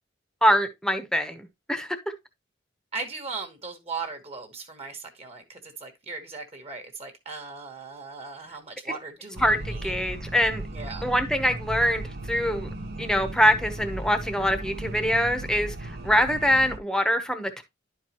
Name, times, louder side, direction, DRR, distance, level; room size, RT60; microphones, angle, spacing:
voice 1, 0.4-2.0 9.4-10.6 11.0-12.7 13.0-17.6, equal, 5° left, 0.9 m, -24 dB
voice 2, 2.9-9.4 9.7-9.9 10.7-11.0, right 4 dB, 35° right, 1.3 m, -38 dB
sound 1, 9.4-16.8, right 2 dB, 55° right, 0.8 m, -36 dB
11.0 x 4.7 x 2.9 m
head